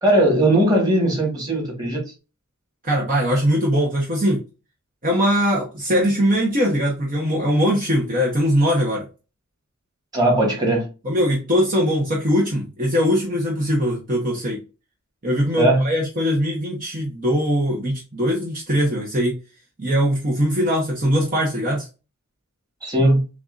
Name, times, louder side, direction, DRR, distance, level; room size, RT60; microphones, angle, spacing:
voice 1, 0.0-2.0 10.1-10.9 15.6-15.9 22.8-23.2, right 1 dB, 20° right, -2 dB, 1.6 m, -18 dB
voice 2, 2.8-4.4 5.0-9.0 11.0-14.6 15.2-19.4 19.8-21.9, equal, 40° right, -3 dB, 1.0 m, -21 dB
6.9 x 2.5 x 2.6 m, 0.31 s
head